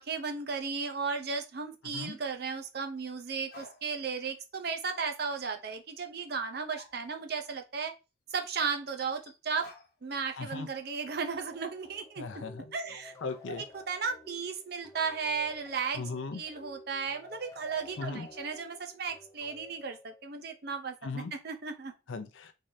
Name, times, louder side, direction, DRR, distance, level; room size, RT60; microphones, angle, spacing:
voice 1, 0.0-7.9 8.3-9.7 10.0-12.2 12.7-13.1 13.5-16.0 16.3-21.9, right 5 dB, 50° right, 0.6 m, -35 dB
sound 1, 1.5-1.6 3.1-3.2 3.5-4.2 4.5-4.6 6.4-6.5 6.7-7.5 7.8-7.9 9.0-10.2 10.5-11.0, left 3 dB, 50° left, 0.9 m, -54 dB
voice 2, 10.4-10.7 12.2-12.6 13.2-13.6 15.9-16.4 18.0-18.3 21.0-21.3 22.1-22.5, left 4 dB, 70° left, 0.5 m, -37 dB
sound 2, 11.3-20.6, left 2 dB, 15° left, 0.5 m, -53 dB
3.7 x 3.3 x 2.7 m
head